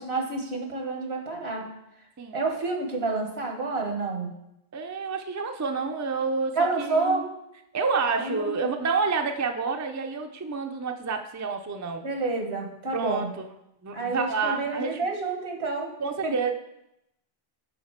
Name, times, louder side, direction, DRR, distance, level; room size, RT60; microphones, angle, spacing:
voice 1, 0.0-1.7 2.3-4.3 6.6-7.3 8.2-8.8 12.0-13.3 13.9-15.9 16.2-16.3, right 3 dB, 85° right, 1 dB, 2.0 m, -29 dB
voice 2, 4.7-7.2 7.7-12.0 12.9-13.3 13.8-15.0 16.0-16.5, right 4 dB, 25° right, 5 dB, 0.5 m, -29 dB
10.5 x 4.0 x 5.8 m, 0.84 s
omnidirectional pair, 1.0 m